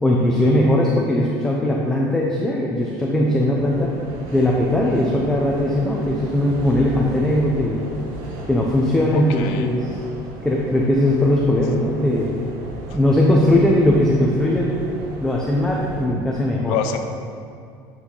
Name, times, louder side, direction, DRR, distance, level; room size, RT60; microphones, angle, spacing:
voice 1, 0.0-3.9 4.3-7.8 8.5-9.9 10.4-12.3 12.9-14.8 15.2-16.7, left 1 dB, 5° left, -3 dB, 0.6 m, -19 dB
sound 1, 3.5-16.0, right 2 dB, 85° right, 1.2 m, -36 dB
voice 2, 9.1-9.7 16.7-17.0, left 8 dB, 80° left, 7 dB, 0.7 m, -26 dB
8.5 x 5.8 x 3.8 m, 2.3 s
cardioid pair, 155°, 10 cm